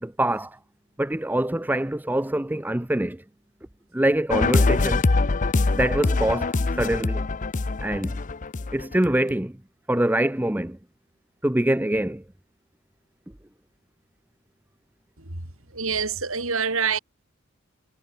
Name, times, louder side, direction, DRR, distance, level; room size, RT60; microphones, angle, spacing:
voice 1, 0.0-0.6 1.0-3.2 3.9-5.0 5.7-7.2 7.8-8.2 8.7-9.6 9.9-10.8 11.4-12.2, right 1 dB, 10° right, 0.6 m, -24 dB
sound 1, 4.3-9.3, left 3 dB, 35° left, 0.6 m, -23 dB
voice 2, 15.7-17.0, right 5 dB, 70° right, 4.4 m, -26 dB
head